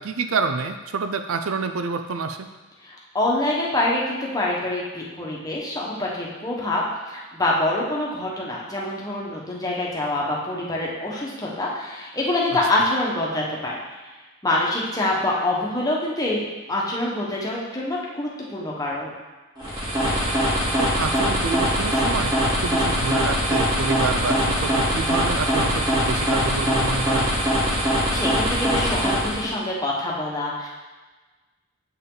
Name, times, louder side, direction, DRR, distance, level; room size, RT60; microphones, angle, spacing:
voice 1, 0.0-2.5 20.8-27.3, right 4 dB, 70° right, 8 dB, 0.5 m, -28 dB
voice 2, 2.8-13.8 14.4-16.4 16.7-19.1 28.1-30.7, left 1 dB, 15° left, -4 dB, 1.3 m, -25 dB
sound 1, 19.6-29.5, equal, 20° right, 2.1 m, -22 dB
7.7 x 5.5 x 3.9 m, 1.2 s
head